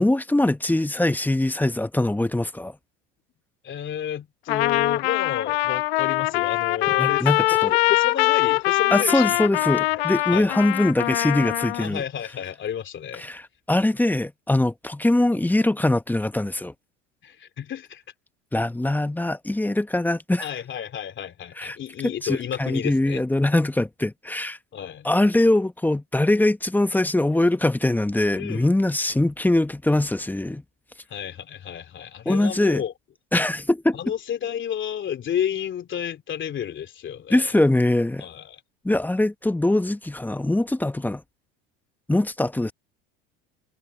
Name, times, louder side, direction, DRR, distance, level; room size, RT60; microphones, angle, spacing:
voice 1, 0.0-2.8 7.0-7.7 8.9-12.0 13.2-13.4 13.7-16.7 18.5-20.5 21.6-21.8 22.0-24.6 25.0-30.6 32.3-32.8 33.3-34.0 37.3-38.2 38.8-41.2 42.1-42.7, left 1 dB, 5° left, 1.2 m, -22 dB
voice 2, 3.6-9.4 9.9-10.0 10.3-10.5 11.7-13.3 17.2-18.0 20.4-23.2 24.7-25.1 28.3-28.7 31.1-32.9 33.9-37.6 38.2-38.6, left 9 dB, 40° left, 3.2 m, -31 dB
Trumpet, 4.5-11.9, left 19 dB, 85° left, 1.1 m, -23 dB
supercardioid pair, 90°, 29 cm